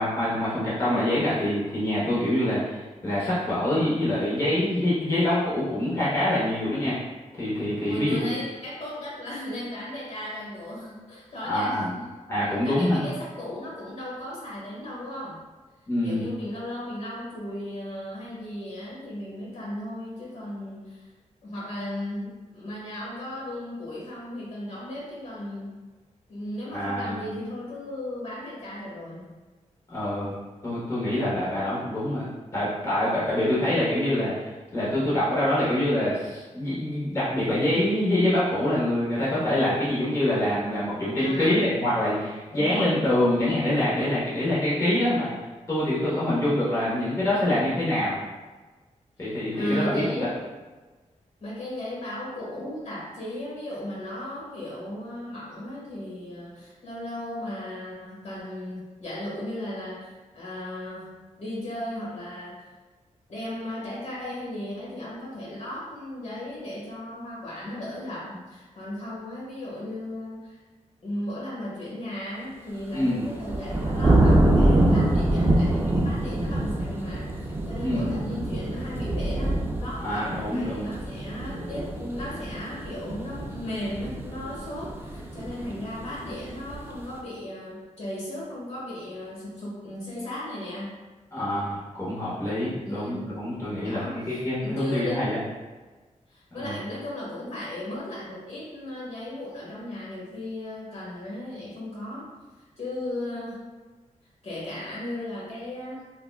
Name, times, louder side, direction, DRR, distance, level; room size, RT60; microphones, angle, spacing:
voice 1, 0.0-7.0 7.4-8.3 11.4-11.9 12.3-13.1 15.9-16.3 26.7-27.2 29.9-30.4 30.6-32.3 32.5-45.3 45.7-48.2 49.2-50.2 72.9-73.2 77.8-78.1 80.0-80.9 91.3-95.4 96.5-96.7, left 1 dB, 25° left, -9 dB, 0.9 m, -25 dB
voice 2, 7.8-12.2 12.6-15.4 16.0-21.1 21.4-25.9 26.3-29.3 41.2-41.7 42.5-42.9 46.1-46.4 49.2-50.4 51.4-62.7 63.3-70.6 71.0-91.0 92.8-93.4 93.8-95.4 96.3-102.3 102.8-103.6 104.4-106.0, left 1 dB, 55° left, -5 dB, 1.3 m, -36 dB
sound 1, 72.9-87.1, right 1 dB, 15° right, 0.4 m, -25 dB
3.6 x 2.2 x 2.3 m, 1.3 s
wide cardioid pair, 90°, 13 cm